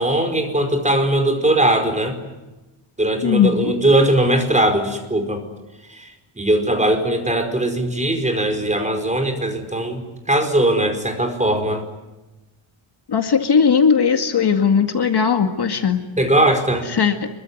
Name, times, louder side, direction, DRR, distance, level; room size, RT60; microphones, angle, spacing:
voice 1, 0.0-2.2 3.0-5.4 5.9-11.8 16.2-16.9, right 1 dB, 15° right, 6 dB, 4.8 m, -20 dB
voice 2, 3.2-3.8 13.1-16.0 16.9-17.3, left 6 dB, 50° left, 6 dB, 2.2 m, -18 dB
26.5 x 23.5 x 9.5 m, 1.1 s
wide cardioid pair, 160°, 49 cm